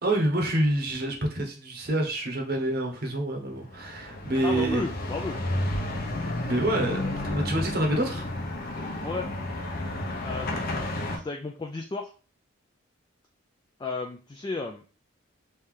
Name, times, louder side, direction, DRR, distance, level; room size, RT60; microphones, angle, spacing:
voice 1, 0.0-4.8 6.4-8.3, right 1 dB, 50° right, 2 dB, 0.9 m, -27 dB
sound 1, 3.5-11.2, left 1 dB, 50° left, 0.7 m, -32 dB
voice 2, 4.4-5.4 9.0-9.3 10.2-10.9 11.2-12.1 13.8-14.8, left 3 dB, 20° left, 2 dB, 0.3 m, -33 dB
3.2 x 2.8 x 3.6 m, 0.36 s
head